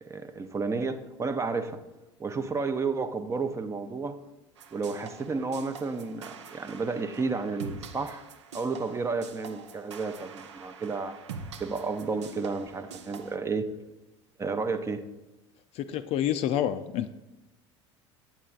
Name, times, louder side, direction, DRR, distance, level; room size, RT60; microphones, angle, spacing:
voice 1, 0.0-1.8 2.2-4.2 4.7-8.3 8.5-11.2 11.6-13.7 14.4-15.0, right 4 dB, 20° right, 0.5 m, -31 dB
sound 1, 4.6-13.4, right 5 dB, 75° right, 0.5 m, -45 dB
voice 2, 15.8-17.1, left 10 dB, 45° left, 0.4 m, -28 dB
8.4 x 7.3 x 2.4 m
figure-of-eight pair, 70°, 15 cm